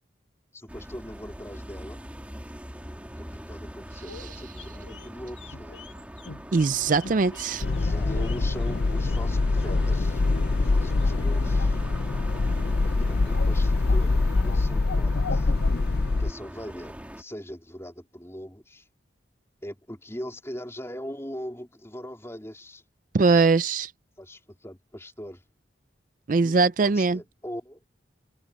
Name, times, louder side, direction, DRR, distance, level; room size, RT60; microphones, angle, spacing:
voice 1, 0.5-2.0 3.2-5.8 7.5-10.2 10.6-11.8 12.8-15.5 16.2-18.9 19.6-22.8 24.2-25.4 26.4-26.6 26.8-27.8, equal, 15° left, 3.8 m, -41 dB
sound 1, 0.7-17.2, equal, 5° right, 2.5 m, -41 dB
sound 2, 4.1-10.6 10.9-11.8 12.1-12.8 13.1-16.5 16.7-16.8, left 3 dB, 80° left, 2.0 m, -43 dB
voice 2, 6.5-7.6 23.1-23.9 26.3-27.2, right 4 dB, 45° right, 0.4 m, -21 dB
sound 3, 7.6-16.3, left 3 dB, 55° left, 0.5 m, -24 dB
head